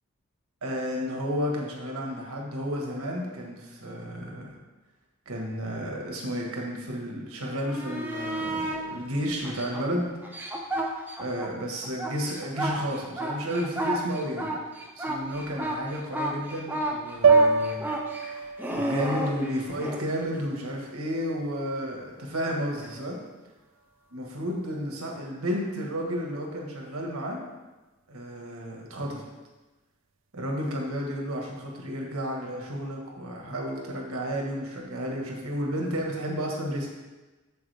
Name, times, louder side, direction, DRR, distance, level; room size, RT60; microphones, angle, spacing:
voice 1, 0.6-4.6 5.2-10.2 11.2-14.5 15.0-17.9 18.7-23.2 24.1-27.4 28.1-29.3 30.3-36.9, equal, 90° right, 0 dB, 1.6 m, -32 dB
sound 1, 7.6-8.8 9.4-11.5 11.8-20.0 22.8-22.9, right 1 dB, 10° right, 0.7 m, -32 dB
sound 2, 17.2-21.5, right 4 dB, 60° right, 0.4 m, -26 dB
8.7 x 7.1 x 3.5 m, 1.2 s
head